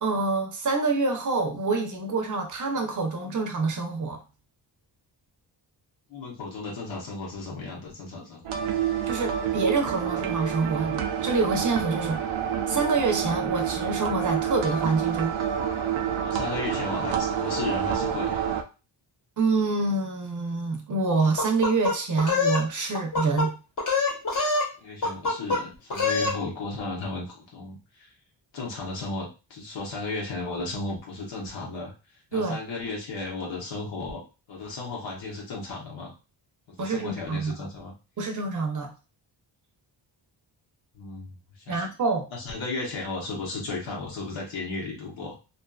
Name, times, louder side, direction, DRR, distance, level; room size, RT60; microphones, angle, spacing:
voice 1, 0.0-4.2 9.1-12.2 12.7-15.4 19.4-23.5 32.3-32.6 36.8-37.7 38.2-38.9 41.7-42.3, right 3 dB, 40° right, 4 dB, 0.6 m, -26 dB
voice 2, 6.1-8.5 16.2-18.6 24.8-28.1 28.5-31.9 32.3-36.1 36.7-37.9 40.9-41.8 42.3-45.4, left 3 dB, 80° left, -3 dB, 0.9 m, -35 dB
sound 1, 8.4-18.6, right 9 dB, 85° right, 0.5 m, -28 dB
sound 2, 21.4-22.6 22.9-23.5 23.8-24.7 25.0-25.6 25.9-26.4, left 3 dB, 40° left, 1.0 m, -25 dB
2.6 x 2.4 x 2.3 m, 0.31 s
wide cardioid pair, 135°, 46 cm